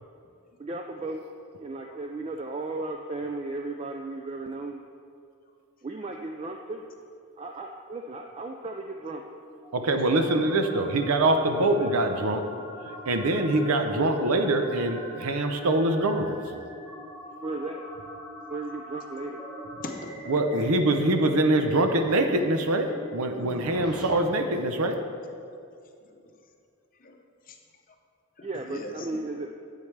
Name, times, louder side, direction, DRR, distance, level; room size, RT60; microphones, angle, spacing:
voice 1, 0.6-1.2 1.6-4.8 5.8-6.9 7.4-9.2 10.5-10.6 11.4-12.0 13.6-13.7 17.4-17.9 18.5-19.4 28.4-29.5, right 2 dB, 25° right, 3 dB, 0.3 m, -35 dB
sound 1, 9.0-24.1, equal, 5° right, 1.5 m, -43 dB
voice 2, 9.7-12.4 13.1-16.4 20.3-25.0, right 2 dB, 80° right, 6 dB, 0.7 m, -24 dB
voice 3, 19.8-20.3 26.0-26.2 27.0-27.6 28.4-29.2, left 2 dB, 40° left, 4 dB, 0.7 m, -41 dB
10.5 x 8.3 x 3.3 m, 2.4 s
head